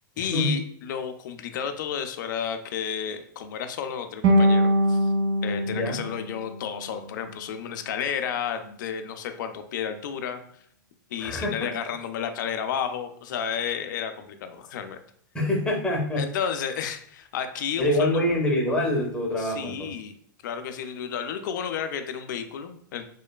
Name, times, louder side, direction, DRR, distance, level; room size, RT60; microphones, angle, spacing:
voice 1, 0.2-5.1 5.4-10.4 11.1-15.0 16.2-18.2 19.4-20.1 20.4-23.0, left 8 dB, 70° left, 8 dB, 0.4 m, -32 dB
sound 1, 4.2-7.3, equal, 40° right, 0.5 m, -23 dB
voice 2, 5.6-6.0 11.2-11.7 15.3-16.2 17.8-19.9, left 1 dB, 10° left, -1 dB, 0.6 m, -25 dB
3.0 x 2.1 x 2.3 m, 0.65 s
hypercardioid pair, 125°, 11 cm